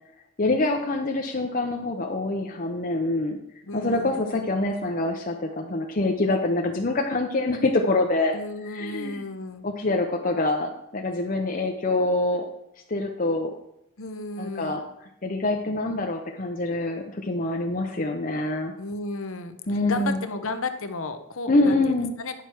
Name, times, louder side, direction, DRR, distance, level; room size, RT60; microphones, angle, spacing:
voice 1, 0.4-3.4 3.7-8.4 8.6-9.3 9.6-12.5 12.9-13.5 14.4-14.8 15.2-18.7 19.7-20.2 21.5-22.1, left 2 dB, 40° left, 3 dB, 0.7 m, -25 dB
voice 2, 3.6-4.2 8.3-9.7 14.0-14.8 18.8-22.4, left 3 dB, 70° left, 8 dB, 0.9 m, -33 dB
10.0 x 6.0 x 4.5 m, 0.83 s
head